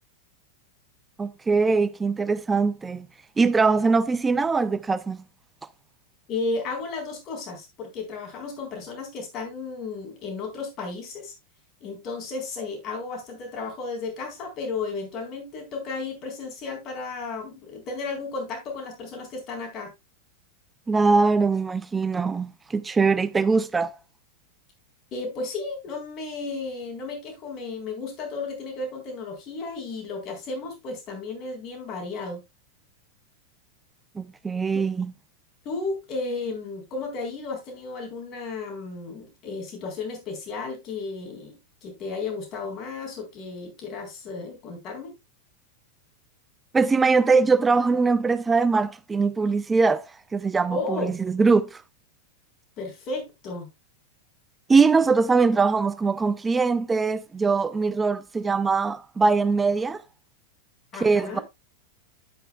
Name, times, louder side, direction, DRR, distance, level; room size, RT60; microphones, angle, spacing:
voice 1, 1.2-3.1 3.4-5.2 20.9-24.0 34.2-35.1 46.7-50.0 50.3-51.8 54.7-60.0 61.0-61.4, right 4 dB, 15° right, 0.7 m, -22 dB
voice 2, 6.3-11.3 11.8-19.9 25.1-32.4 34.7-34.8 35.6-41.5 41.8-45.1 50.7-51.2 52.8-53.7 60.9-61.4, left 3 dB, 35° left, 4.1 m, -33 dB
10.5 x 8.4 x 2.3 m
figure-of-eight pair, 90°, 0 cm